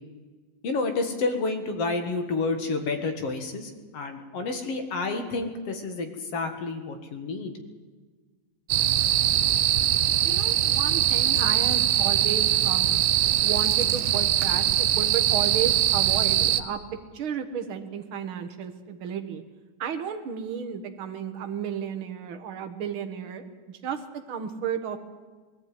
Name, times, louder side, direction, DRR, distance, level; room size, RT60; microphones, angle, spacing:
voice 1, 0.6-7.5, left 3 dB, 55° left, 6 dB, 2.7 m, -29 dB
sound 1, 8.7-16.6, right 11 dB, 80° right, 2.2 m, -22 dB
voice 2, 10.2-13.0 13.4-16.8 17.1-19.4 19.8-24.0 24.3-25.0, right 8 dB, 50° right, 6 dB, 2.0 m, -33 dB
20.5 x 14.5 x 9.5 m, 1.4 s
omnidirectional pair, 3.4 m